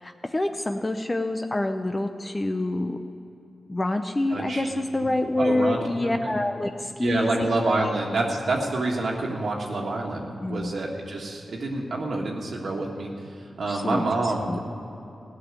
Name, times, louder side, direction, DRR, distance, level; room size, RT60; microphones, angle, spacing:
voice 1, 0.0-3.0 3.7-7.5 10.4-10.7 13.7-14.0 14.5-14.6, left 2 dB, 25° left, 6 dB, 0.6 m, -27 dB
voice 2, 4.3-4.6 5.0-5.1 5.4-6.3 7.0-14.6, right 2 dB, 70° right, -1 dB, 1.5 m, -27 dB
15.0 x 6.2 x 9.7 m, 2.8 s
cardioid pair, 60°, 0 cm